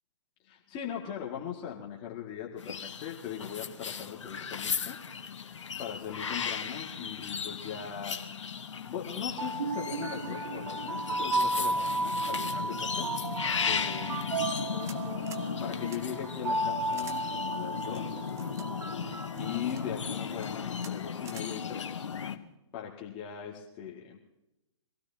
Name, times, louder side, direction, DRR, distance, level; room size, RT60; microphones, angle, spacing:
voice 1, 0.4-5.0 5.3-8.5 8.8-13.3 13.7-14.3 15.6-18.3 19.4-22.1 22.7-24.2, left 9 dB, 30° left, -2 dB, 2.1 m, -40 dB
sound 1, 2.6-22.4, left 7 dB, 70° left, 1.3 m, -36 dB
sound 2, 9.2-20.3, right 2 dB, 70° right, 1.2 m, -34 dB
sound 3, 14.5-15.0 15.3-15.5 15.9-16.0 16.9-17.2 17.9-18.7 19.4-19.8 20.3-20.5 20.8-20.9 21.3-21.5, right 5 dB, 20° right, 1.2 m, -48 dB
25.0 x 16.0 x 2.9 m, 0.92 s
figure-of-eight pair, 120°, 16 cm